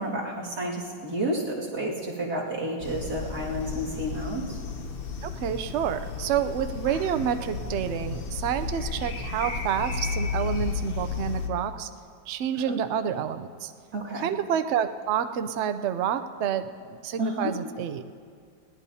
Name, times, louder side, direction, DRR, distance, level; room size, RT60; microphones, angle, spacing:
voice 1, 0.0-4.6 12.6-12.8 13.9-14.3 17.2-17.5, right 1 dB, 55° right, -5 dB, 2.7 m, -31 dB
sound 1, 2.8-11.5, left 5 dB, 50° left, 0.6 m, -33 dB
voice 2, 5.2-11.9 12.3-13.7 14.1-18.1, right 8 dB, 80° right, 9 dB, 0.6 m, -29 dB
20.5 x 17.5 x 2.8 m, 2.1 s
omnidirectional pair, 2.0 m